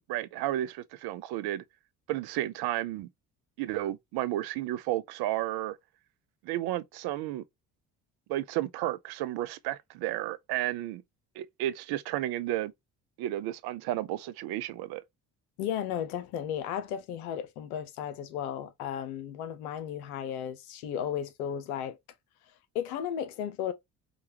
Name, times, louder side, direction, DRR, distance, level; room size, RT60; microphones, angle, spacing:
voice 1, 0.0-1.6 2.1-3.1 3.6-5.8 6.4-7.4 8.3-11.0 11.4-12.7 13.2-15.0, right 14 dB, 60° right, 0.6 m, -32 dB
voice 2, 15.6-22.0 22.7-23.7, left 9 dB, 80° left, 0.8 m, -34 dB
5.1 x 2.3 x 2.9 m
hypercardioid pair, 50°, 43 cm